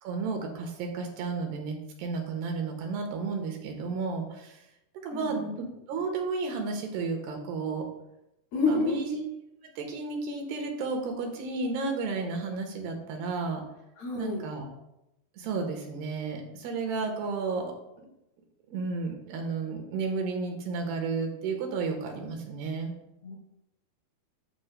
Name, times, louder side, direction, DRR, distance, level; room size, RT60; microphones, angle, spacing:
voice 1, 0.0-4.6 5.0-7.8 8.7-9.2 9.6-13.6 14.1-14.7 15.4-17.7 18.0-18.1 18.7-22.9, right 4 dB, 80° right, 2 dB, 3.3 m, -32 dB
voice 2, 5.1-5.4 8.5-8.9 14.0-14.4 23.2-23.4, left 3 dB, 60° left, -1 dB, 1.5 m, -28 dB
13.5 x 6.3 x 2.2 m, 0.87 s
omnidirectional pair, 4.6 m